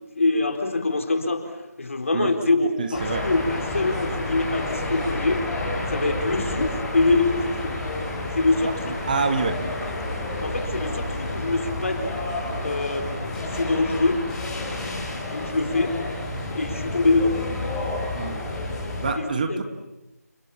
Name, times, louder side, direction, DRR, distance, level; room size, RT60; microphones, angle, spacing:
voice 1, 0.2-5.4 5.9-7.8 8.4-8.7 10.4-12.2 12.6-14.2 15.3-16.0 16.5-17.4 19.2-19.6, left 3 dB, 50° left, 5 dB, 4.2 m, -24 dB
voice 2, 2.8-3.3 8.6-8.7 9.1-9.7 18.2-18.4 19.0-19.6, right 4 dB, 30° right, 7 dB, 1.9 m, -26 dB
sound 1, 2.9-19.1, left 2 dB, 5° left, 3.7 m, -30 dB
29.5 x 26.5 x 7.3 m, 1.0 s
figure-of-eight pair, 165°, 9 cm